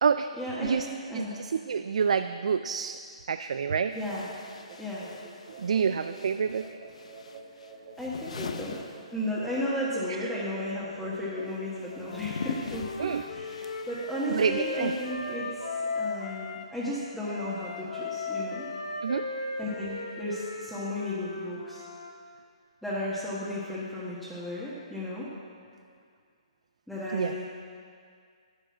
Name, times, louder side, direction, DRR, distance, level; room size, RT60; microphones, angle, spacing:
voice 1, 0.4-1.3 3.9-4.4 4.8-5.1 8.0-8.8 9.1-12.9 13.3-15.7 15.9-18.7 19.6-21.8 22.8-25.3 26.9-27.4, left 1 dB, ahead, -9 dB, 1.4 m, -34 dB
voice 2, 1.1-3.0 3.3-4.0 5.6-6.7 13.0-13.3 14.3-14.9 19.0-19.3 27.1-27.4, right 6 dB, 75° right, 10 dB, 0.3 m, -27 dB
sound 1, 3.0-3.1 3.9-9.7 10.0-15.8, left 4 dB, 80° left, 0.8 m, -43 dB
sound 2, 4.4-12.7, right 4 dB, 45° right, 3.1 m, -48 dB
Wind instrument woodwind instrument, 12.0-16.7 17.3-22.1, left 3 dB, 60° left, 1.6 m, -36 dB
10.5 x 7.9 x 6.1 m, 2.2 s
hypercardioid pair, 145°, 3 cm